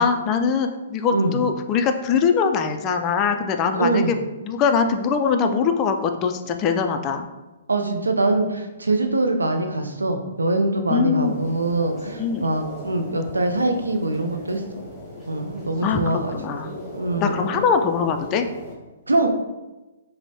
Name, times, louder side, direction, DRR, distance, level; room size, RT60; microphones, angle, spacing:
voice 1, 0.0-7.3 10.9-11.4 12.2-12.5 15.8-16.0 16.3-16.8 17.2-18.5, left 6 dB, 25° left, 6 dB, 0.3 m, -22 dB
voice 2, 3.7-4.1 7.7-14.6 15.3-16.3 16.9-17.5 19.1-19.3, right 2 dB, 80° right, 5 dB, 0.4 m, -23 dB
sound 1, 11.2-18.7, left 1 dB, ahead, 1.4 m, -37 dB
5.2 x 2.1 x 2.7 m, 1.1 s
figure-of-eight pair, 120°, 0 cm